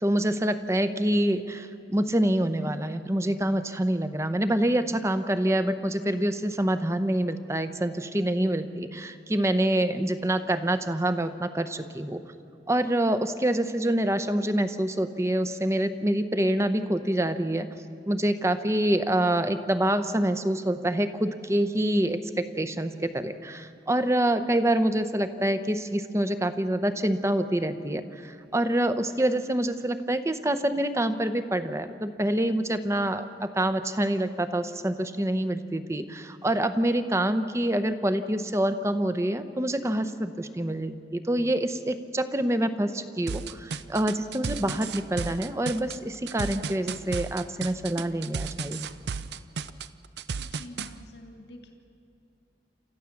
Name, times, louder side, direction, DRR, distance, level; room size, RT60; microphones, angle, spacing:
voice 1, 0.0-12.2 12.7-17.7 18.1-48.9, right 1 dB, 15° right, 11 dB, 0.7 m, -26 dB
sound 1, 43.3-50.9, right 5 dB, 75° right, 0.5 m, -33 dB
voice 2, 50.3-51.7, left 1 dB, 75° left, 4 dB, 1.8 m, -47 dB
29.0 x 14.0 x 7.2 m, 2.6 s
head